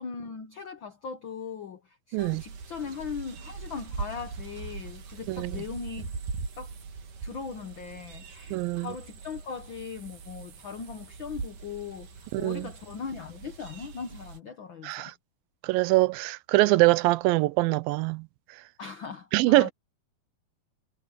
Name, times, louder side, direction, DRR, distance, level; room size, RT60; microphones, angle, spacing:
voice 1, 0.0-6.2 6.6-6.7 7.2-15.1 18.8-19.7, left 6 dB, 80° left, 1.0 m, -39 dB
sound 1, 2.2-14.4, right 4 dB, 65° right, 4.0 m, -41 dB
voice 2, 5.3-5.6 8.5-8.9 12.3-12.7 14.8-15.1 15.6-18.3 19.3-19.7, right 20 dB, 90° right, 2.4 m, -23 dB
omnidirectional pair, 4.0 m